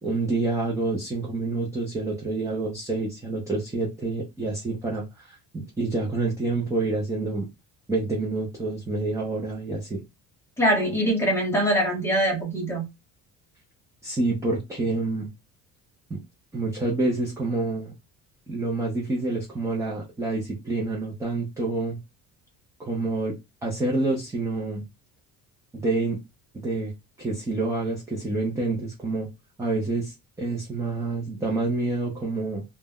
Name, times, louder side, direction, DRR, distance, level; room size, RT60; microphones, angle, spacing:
voice 1, 0.0-7.5 7.9-10.0 14.0-15.3 16.1-16.2 16.5-17.9 18.5-22.0 22.8-23.3 23.6-24.8 25.7-26.2 26.5-26.9 27.2-29.3 29.6-32.6, right 2 dB, 10° right, 0.4 m, -28 dB
voice 2, 10.6-12.9, equal, 5° left, 0.9 m, -23 dB
2.1 x 2.0 x 3.4 m
cardioid pair, 170°, 34 cm